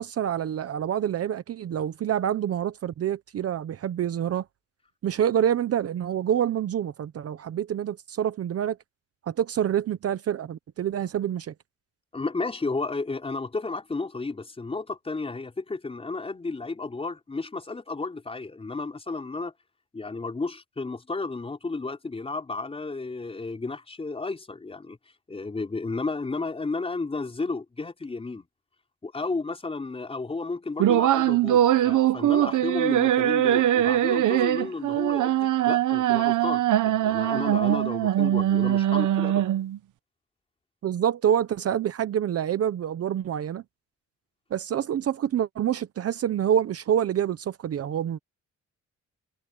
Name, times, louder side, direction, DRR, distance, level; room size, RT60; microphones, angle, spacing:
voice 1, 0.0-4.4 5.0-8.8 9.3-11.5 40.8-43.6 44.5-48.2, right 9 dB, 50° right, 0.8 m, -27 dB
voice 2, 12.1-19.5 19.9-25.0 25.3-28.5 29.0-39.5, left 3 dB, 20° left, 4.8 m, -32 dB
sound 1, 30.8-39.8, right 12 dB, 85° right, 1.0 m, -22 dB
wide cardioid pair, 165°, 30 cm